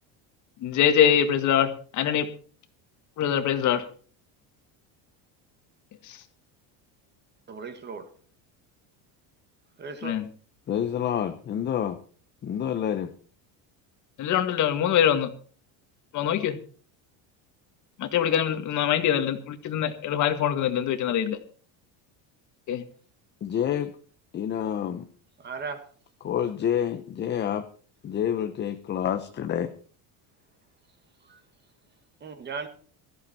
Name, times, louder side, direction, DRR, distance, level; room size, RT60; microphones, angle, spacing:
voice 1, 0.6-2.3 3.2-3.8 6.0-6.2 10.0-10.3 14.2-15.3 16.1-16.6 18.0-21.4 22.7-22.8, left 9 dB, 40° left, 1.8 m, -24 dB
voice 2, 7.5-8.1 9.8-10.1 25.4-25.9 31.3-31.4 32.2-32.7, right 5 dB, 25° right, 1.8 m, -36 dB
voice 3, 10.7-12.0 12.4-13.1 23.4-23.9 24.3-25.1 26.2-27.7 28.0-29.7, left 9 dB, 25° left, 0.8 m, -28 dB
17.0 x 14.0 x 4.4 m
cardioid pair, 165°, 43 cm